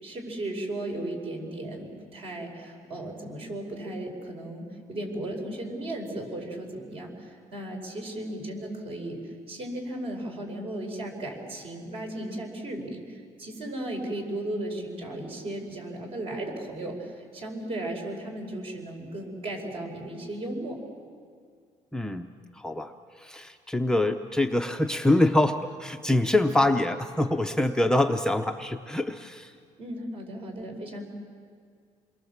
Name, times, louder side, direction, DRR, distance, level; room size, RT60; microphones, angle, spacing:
voice 1, 0.0-4.6 4.9-20.8 29.8-31.1, right 1 dB, 45° right, 2 dB, 5.3 m, -35 dB
voice 2, 21.9-22.3 22.5-29.5, left 1 dB, 5° left, 4 dB, 0.7 m, -25 dB
28.5 x 22.0 x 7.3 m, 2.2 s
cardioid pair, 140°, 13 cm